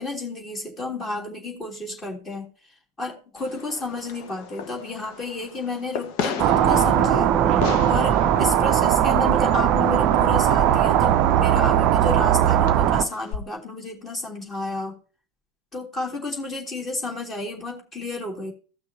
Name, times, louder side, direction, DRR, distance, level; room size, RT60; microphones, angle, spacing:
voice 1, 0.0-15.0 15.7-18.5, left 2 dB, 20° left, 0 dB, 3.1 m, -32 dB
Fireworks, 3.4-13.4, left 6 dB, 45° left, 1.3 m, -36 dB
sound 1, 6.4-13.0, right 10 dB, 35° right, 0.6 m, -19 dB
16.0 x 6.1 x 2.8 m, 0.36 s
figure-of-eight pair, 90°, 0 cm